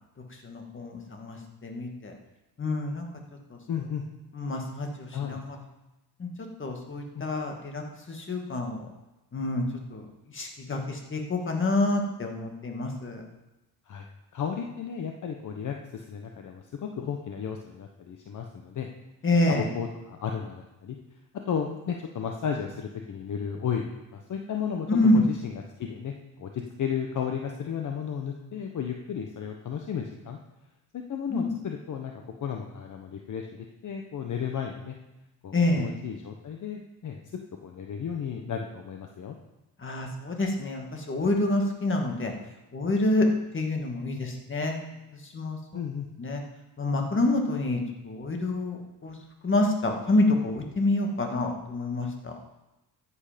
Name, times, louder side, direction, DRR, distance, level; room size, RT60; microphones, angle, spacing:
voice 1, 0.4-2.1 2.6-3.1 3.5-3.6 4.3-5.6 6.2-6.3 6.6-8.9 9.3-9.6 9.9-10.1 10.3-13.2 19.2-19.7 24.9-25.2 31.3-31.5 35.5-35.9 39.8-42.3 42.7-43.3 43.5-44.8 45.3-45.6 46.2-46.4 46.8-49.1 49.4-52.3, left 2 dB, 30° left, 2 dB, 2.1 m, -27 dB
voice 2, 3.7-4.0 5.1-5.7 7.1-7.2 13.9-14.0 14.3-18.9 19.5-21.0 21.5-24.9 25.1-30.4 30.9-35.0 35.4-37.2 37.6-39.4 45.7-46.1, left 7 dB, 50° left, 3 dB, 1.1 m, -34 dB
13.5 x 8.4 x 5.2 m, 0.98 s
cardioid pair, 110°, 38 cm